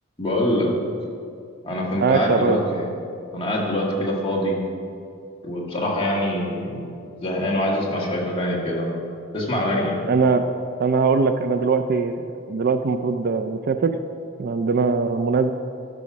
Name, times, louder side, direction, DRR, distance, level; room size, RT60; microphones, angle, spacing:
voice 1, 0.2-0.7 1.6-2.9 3.3-4.6 5.4-6.9 7.2-9.0 9.3-10.0, left 1 dB, 25° left, -4 dB, 1.6 m, -24 dB
voice 2, 2.0-2.6 10.1-10.5 10.8-13.9 14.4-15.5, right 4 dB, 45° right, 8 dB, 0.3 m, -21 dB
12.0 x 4.8 x 6.0 m, 2.4 s
head